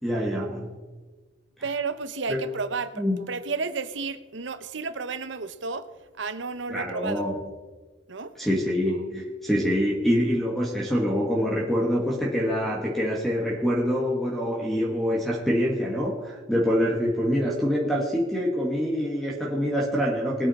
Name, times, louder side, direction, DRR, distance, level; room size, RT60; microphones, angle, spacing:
voice 1, 0.0-0.7 2.3-2.4 3.0-3.2 6.7-7.4 8.4-20.5, equal, ahead, 1.7 m, -25 dB
voice 2, 1.6-5.9 6.2-7.3 8.1-8.3, right 4 dB, 75° right, 0.8 m, -32 dB
20.0 x 8.9 x 4.2 m
head